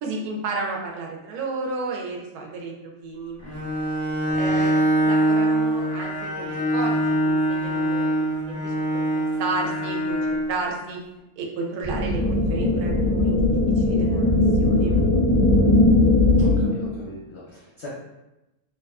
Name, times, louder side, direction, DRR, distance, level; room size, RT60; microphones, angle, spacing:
voice 1, 0.0-3.4 4.3-7.9 8.5-8.8 9.0-11.0 11.4-13.4 13.8-15.0, right 3 dB, 80° right, 0 dB, 1.1 m, -32 dB
Bowed string instrument, 3.4-10.5, right 1 dB, 15° right, 0.6 m, -23 dB
voice 2, 4.3-4.6 15.5-15.8 16.4-17.9, left 1 dB, 60° left, -7 dB, 0.7 m, -42 dB
sound 1, 11.8-16.8, left 2 dB, 45° right, 0.8 m, -19 dB
2.7 x 2.3 x 2.3 m, 0.96 s
omnidirectional pair, 1.6 m